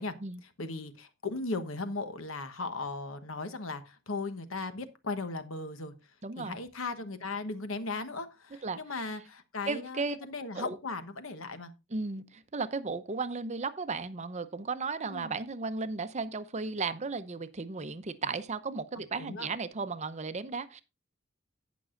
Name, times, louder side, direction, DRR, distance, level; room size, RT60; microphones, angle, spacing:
voice 1, 0.6-5.9 6.4-11.7 15.1-15.3 19.2-19.5, left 3 dB, 75° left, 1.1 m, -37 dB
voice 2, 6.2-6.6 8.6-8.8 9.7-10.2 10.5-10.8 11.9-20.8, right 4 dB, 35° right, 0.7 m, -35 dB
17.5 x 6.1 x 2.5 m
head